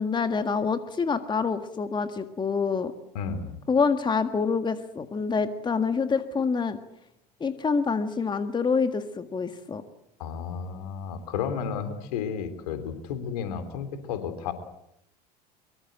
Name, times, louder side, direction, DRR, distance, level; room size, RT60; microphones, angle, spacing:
voice 1, 0.0-2.9 3.7-6.8 7.4-9.8, left 5 dB, 20° left, 9 dB, 1.8 m, -26 dB
voice 2, 3.1-3.5 10.2-14.5, left 7 dB, 65° left, 9 dB, 3.3 m, -32 dB
23.5 x 23.5 x 8.0 m, 0.80 s
figure-of-eight pair, 70°, 21 cm